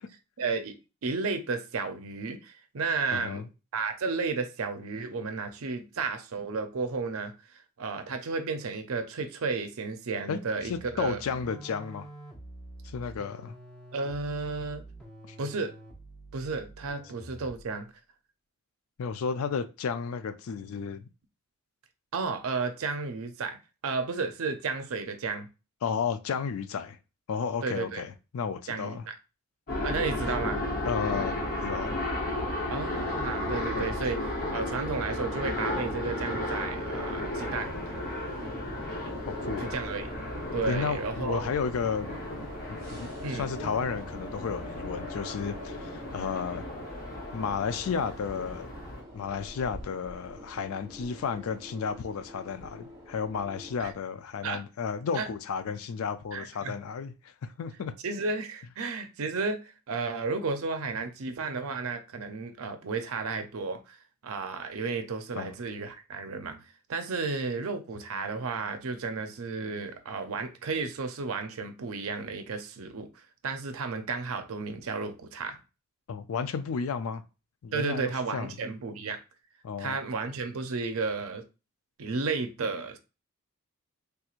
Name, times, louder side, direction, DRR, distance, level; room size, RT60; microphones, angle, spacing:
voice 1, 0.4-0.8 1.0-3.4 3.7-7.3 7.8-11.2 13.9-14.8 15.4-15.7 16.3-17.9 22.1-23.6 23.8-25.5 27.6-28.0 28.7-29.1 29.8-30.6 32.7-34.2 34.5-37.7 39.6-40.1 40.5-41.5 43.2-43.5 53.8-53.9 54.4-54.6 55.1-55.3 56.3-56.7 58.0-64.0 64.2-66.6 66.9-75.6 77.7-79.2 79.8-81.4 82.0-83.0, right 4 dB, 70° right, 0.5 m, -33 dB
voice 2, 3.1-3.5 10.3-12.1 12.8-13.6 15.3-15.4 19.0-21.1 25.8-27.0 27.3-29.1 30.8-31.4 31.6-32.0 33.8-33.9 39.3-39.7 40.7-42.2 42.7-46.7 47.3-48.7 49.1-57.9 65.4-65.5 76.1-77.2 77.6-78.6 79.6-80.0, left 6 dB, 70° left, 0.4 m, -33 dB
sound 1, 10.6-17.7, right 1 dB, 5° left, 0.7 m, -47 dB
sound 2, 29.7-49.0, left 1 dB, 40° left, 0.8 m, -34 dB
sound 3, 34.2-53.9, equal, 15° right, 1.2 m, -47 dB
3.4 x 3.0 x 2.4 m
head